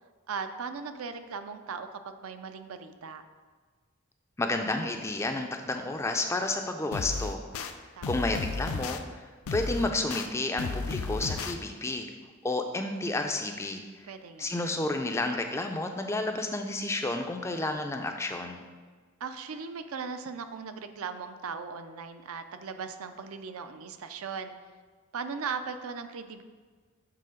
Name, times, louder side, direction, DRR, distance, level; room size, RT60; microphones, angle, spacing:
voice 1, 0.3-3.2 7.9-8.2 14.1-14.5 19.2-24.5 25.1-26.4, right 5 dB, 75° right, 9 dB, 0.4 m, -38 dB
voice 2, 4.4-7.7 8.1-12.1 12.4-14.1 14.4-18.6, left 2 dB, 10° left, 5 dB, 0.3 m, -31 dB
sound 1, 6.9-7.7 8.0-9.0 9.5-10.3 10.6-11.5, left 4 dB, 75° left, 0.4 m, -33 dB
6.8 x 3.8 x 4.9 m, 1.5 s
head